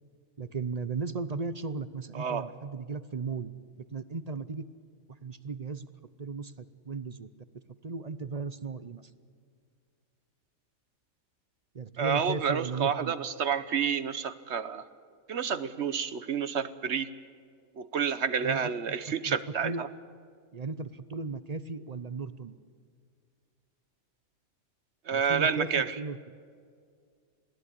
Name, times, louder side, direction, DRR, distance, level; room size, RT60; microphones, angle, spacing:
voice 1, 0.4-4.6 5.2-5.9 6.2-7.3 7.8-9.1 11.7-13.2 18.4-18.9 19.3-19.4 19.6-19.9 20.5-22.6 25.1-26.2, right 4 dB, 40° right, 14 dB, 0.6 m, -36 dB
voice 2, 2.1-2.5 12.0-14.8 15.3-17.2 17.8-19.9 25.1-26.0, right 7 dB, 55° right, 14 dB, 1.1 m, -29 dB
21.5 x 16.0 x 9.9 m, 2.1 s
omnidirectional pair, 1.5 m